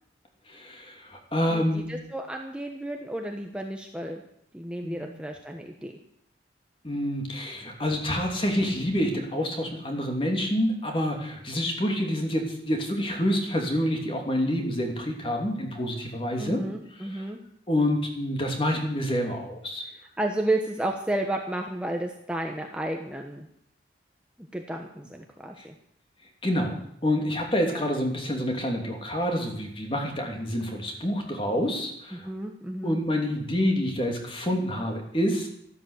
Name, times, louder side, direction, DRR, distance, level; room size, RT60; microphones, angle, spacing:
voice 1, 0.5-1.9 4.8-5.1 6.8-16.6 16.9-17.3 17.7-19.9 25.6-25.7 26.4-26.8 27.0-32.3 32.8-35.5, equal, 30° left, 2 dB, 2.9 m, -27 dB
voice 2, 1.5-4.2 4.5-5.9 16.4-17.4 20.2-23.5 24.5-25.7 27.7-27.9 32.1-33.0, right 1 dB, 5° right, 2 dB, 1.2 m, -32 dB
13.5 x 12.5 x 8.3 m, 0.72 s
head